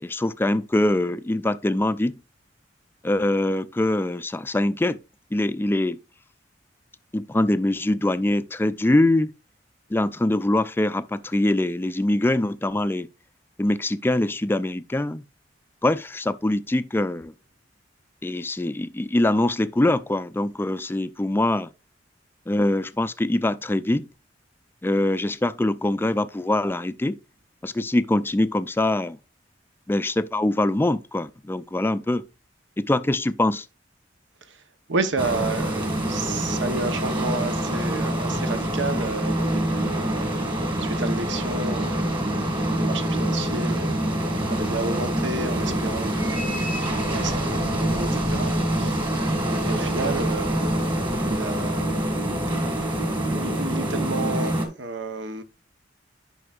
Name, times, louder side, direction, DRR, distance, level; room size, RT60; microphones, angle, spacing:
voice 1, 0.0-2.2 3.0-5.0 5.3-6.0 7.1-9.3 9.9-13.1 13.6-15.2 15.8-17.3 18.2-21.7 22.5-24.1 24.8-27.2 27.6-29.2 29.9-32.2 32.8-33.7, left 1 dB, 10° left, 0.4 m, -23 dB
voice 2, 34.9-49.0 49.6-50.9 51.2-52.1 53.3-55.4, right 3 dB, 75° right, 0.9 m, -31 dB
sound 1, 35.2-54.7, right 1 dB, 25° right, 1.8 m, -25 dB
11.0 x 5.6 x 2.4 m
head